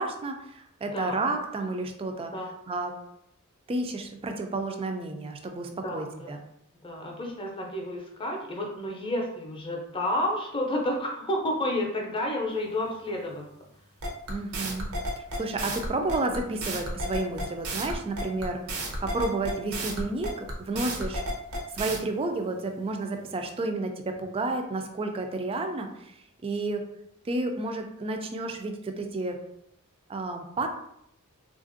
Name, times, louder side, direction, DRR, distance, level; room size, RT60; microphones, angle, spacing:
voice 1, 0.0-2.3 2.7-2.9 3.7-6.4 14.3-14.9 15.2-21.2 21.7-26.8 27.2-29.4 30.1-30.7, right 2 dB, 25° right, 5 dB, 0.3 m, -31 dB
voice 2, 5.8-6.4 6.8-13.5, left 1 dB, 25° left, 0 dB, 0.6 m, -30 dB
sound 1, 14.0-22.0, right 1 dB, 85° right, 0.8 m, -32 dB
3.4 x 2.4 x 2.5 m, 0.75 s
head